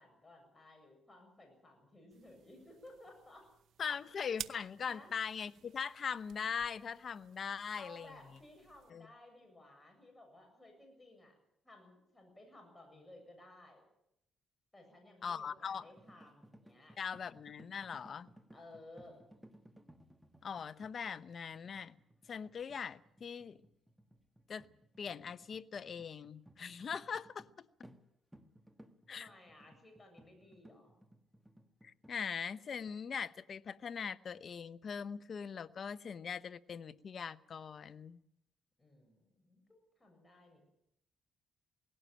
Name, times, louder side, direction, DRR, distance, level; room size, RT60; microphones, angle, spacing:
voice 1, 0.0-3.5 4.9-5.1 7.7-11.3 11.6-13.8 14.7-17.0 18.5-19.3 29.1-31.0 38.8-40.6, left 1 dB, 15° left, 3 dB, 7.6 m, -57 dB
sound 1, 2.1-8.9, right 10 dB, 70° right, 0.8 m, -53 dB
voice 2, 3.8-8.1 8.9-9.1 15.2-15.9 17.0-18.3 20.4-22.0 22.3-23.6 24.5-24.7 25.0-27.5 29.1-29.3 31.8-38.2, left 6 dB, 50° left, 14 dB, 0.8 m, -41 dB
sound 2, 16.0-27.6 27.8-28.1 28.3-32.2, right 1 dB, 5° right, 1.6 m, -61 dB
18.5 x 16.5 x 8.8 m, 0.78 s
cardioid pair, 90°, 0 cm